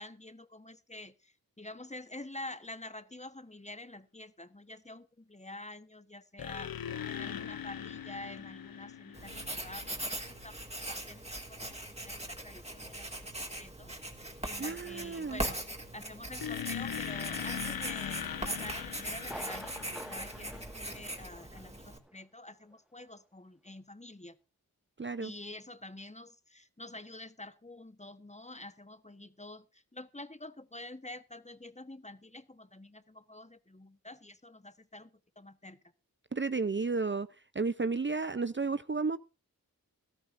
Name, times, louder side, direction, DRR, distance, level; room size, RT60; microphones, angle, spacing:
voice 1, 0.0-6.8 7.1-11.6 12.0-12.2 12.4-13.9 14.4-15.6 15.9-24.4 25.2-35.8, left 2 dB, 20° left, 1.2 m, -48 dB
sound 1, 6.4-10.0 16.4-20.6, left 8 dB, 80° left, 0.7 m, -40 dB
Writing, 9.1-22.0, right 1 dB, 20° right, 3.1 m, -40 dB
voice 2, 14.6-15.4 25.0-25.3 36.3-37.3 37.5-39.2, right 4 dB, 35° right, 0.6 m, -32 dB
Thunder, 19.2-21.8 22.1-22.2 22.7-22.8, equal, ahead, 1.7 m, -47 dB
17.5 x 13.0 x 2.6 m
cardioid pair, 45°, 35 cm